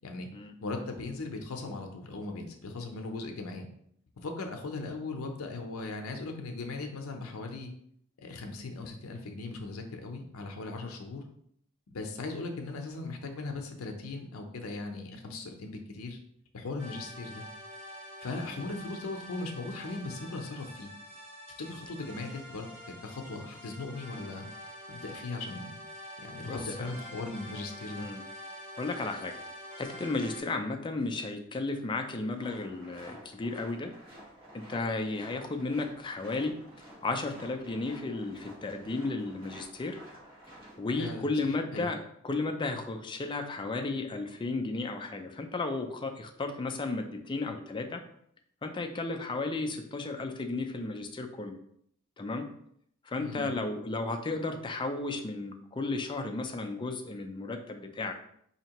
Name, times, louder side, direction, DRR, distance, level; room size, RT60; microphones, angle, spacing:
voice 1, 0.6-3.7 4.2-7.7 8.2-11.2 11.9-16.2 16.5-17.4 18.2-20.9 21.6-22.7 23.0-24.5 24.9-25.7 26.2-28.1 41.0-41.9 53.2-53.5, left 3 dB, 85° left, 4 dB, 0.6 m, -38 dB
sound 1, 16.8-30.4, equal, 65° right, 1.4 m, -46 dB
voice 2, 26.5-26.9 28.0-28.2 28.8-29.4 29.8-33.9 34.5-36.5 37.0-40.0 40.8-42.0 42.2-48.0 48.6-51.6 52.2-52.5 53.0-58.1, left 3 dB, 25° left, 5 dB, 0.4 m, -34 dB
sound 2, 32.3-41.1, right 1 dB, 30° right, 1.6 m, -51 dB
4.3 x 2.8 x 2.9 m, 0.69 s
head